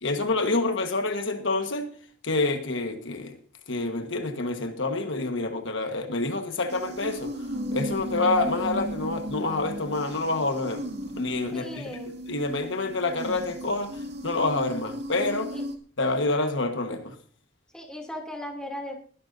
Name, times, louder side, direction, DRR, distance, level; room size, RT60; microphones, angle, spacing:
voice 1, 0.0-1.9 2.2-3.4 3.7-12.0 12.3-15.6 16.0-17.1, left 2 dB, 60° left, 1.4 m, -27 dB
sound 1, 6.7-15.8, equal, 55° right, 2.3 m, -36 dB
voice 2, 11.5-12.2 15.5-15.6 17.7-19.0, left 1 dB, 5° left, 2.7 m, -37 dB
21.0 x 11.5 x 2.7 m
head